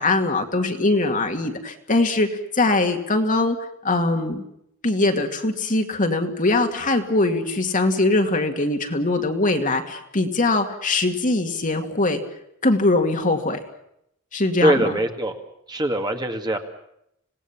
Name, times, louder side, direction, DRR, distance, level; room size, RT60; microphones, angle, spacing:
voice 1, 0.0-2.3 2.5-3.6 3.8-4.4 4.8-12.2 12.6-13.6 14.3-14.8, left 2 dB, 40° left, 5 dB, 2.3 m, -21 dB
voice 2, 14.6-15.4 15.7-16.6, right 1 dB, 20° right, 5 dB, 2.0 m, -22 dB
26.5 x 18.5 x 7.4 m, 0.76 s
head